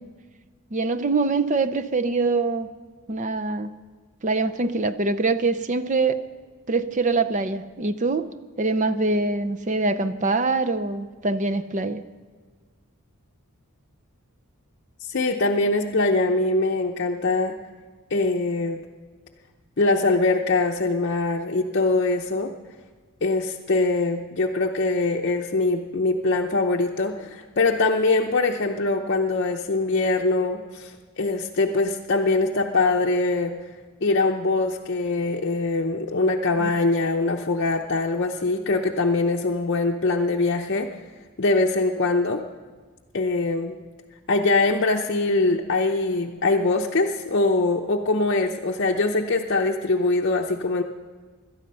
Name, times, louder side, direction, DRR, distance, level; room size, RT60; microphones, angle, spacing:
voice 1, 0.7-2.7 3.1-3.7 4.2-6.2 6.7-8.3 8.6-12.0 36.6-36.7, right 3 dB, 35° right, 9 dB, 0.6 m, -24 dB
voice 2, 15.1-17.6 18.1-18.8 19.8-22.5 23.2-33.5 34.0-40.9 41.4-42.4 43.1-43.8 44.3-50.8, left 3 dB, 50° left, 1 dB, 0.7 m, -23 dB
17.5 x 12.5 x 5.5 m, 1.5 s
head